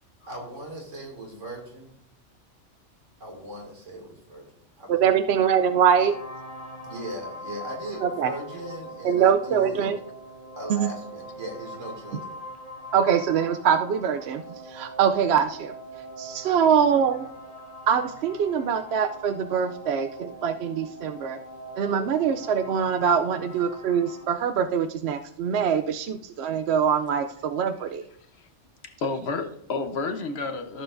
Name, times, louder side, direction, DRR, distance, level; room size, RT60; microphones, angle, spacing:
voice 1, 0.3-1.9 3.2-4.5 4.8-5.2 6.8-9.9 10.6-12.4, equal, 85° right, 0 dB, 2.8 m, -39 dB
voice 2, 4.9-6.2 8.0-8.3 9.0-10.0 10.7-10.9 12.9-14.4 14.7-15.7 16.2-17.3 17.9-21.4 21.8-28.0, right 7 dB, 65° right, 8 dB, 0.8 m, -23 dB
sound 1, 5.4-24.2, right 1 dB, 45° left, 2.6 m, -42 dB
voice 3, 28.8-30.8, left 3 dB, 60° left, 7 dB, 1.2 m, -30 dB
14.5 x 6.9 x 2.6 m, 0.70 s
omnidirectional pair, 1.3 m